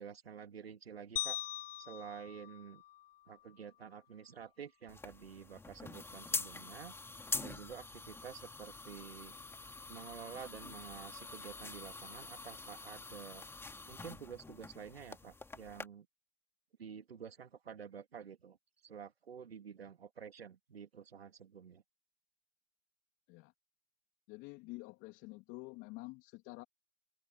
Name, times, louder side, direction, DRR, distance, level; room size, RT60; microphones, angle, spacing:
voice 1, 0.0-1.4 1.8-2.8 3.3-6.9 7.4-9.3 9.9-13.5 13.9-16.1 16.8-18.6 18.8-21.8, right 7 dB, 90° right, 2.2 m, -50 dB
sound 1, 1.2-3.5, left 14 dB, 70° left, 0.6 m, -42 dB
sound 2, 4.9-15.9, left 3 dB, 10° left, 2.5 m, -45 dB
voice 2, 24.3-26.6, left 24 dB, 40° left, 3.1 m, -48 dB
open air
hypercardioid pair, 115°, 30 cm